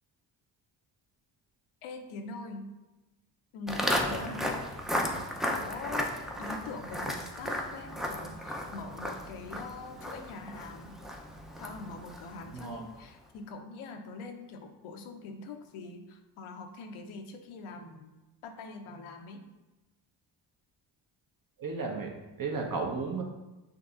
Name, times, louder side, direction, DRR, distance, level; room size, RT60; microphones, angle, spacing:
voice 1, 1.8-2.7 3.5-4.6 4.9-6.1 6.4-11.0 11.6-18.1 18.4-19.4, left 3 dB, 75° left, 5 dB, 0.7 m, -43 dB
Walk footsteps, 3.7-12.9, equal, ahead, 0.5 m, -35 dB
voice 2, 21.6-22.1 22.4-23.2, right 4 dB, 45° right, 1 dB, 1.1 m, -34 dB
6.3 x 2.9 x 2.5 m, 1.1 s
supercardioid pair, 55°, 50 cm